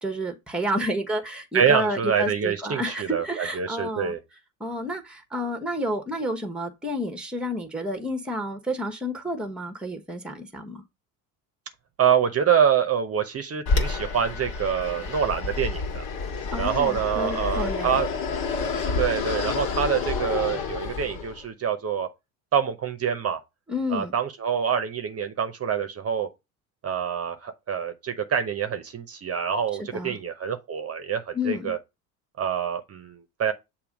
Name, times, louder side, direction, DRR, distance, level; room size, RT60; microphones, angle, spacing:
voice 1, 0.0-4.1 4.6-10.8 16.5-18.0 23.7-24.1 29.9-30.2 31.3-31.7, equal, ahead, 1.1 m, -30 dB
voice 2, 1.5-4.2 12.0-16.0 16.6-18.1 19.0-22.1 22.5-23.4 23.9-26.3 26.8-31.8 32.4-33.5, right 8 dB, 35° right, 0.8 m, -26 dB
Fixed-wing aircraft airplane, 13.7-21.4, left 4 dB, 55° left, 1.7 m, -29 dB
6.9 x 2.8 x 5.1 m
supercardioid pair, 80°, 42 cm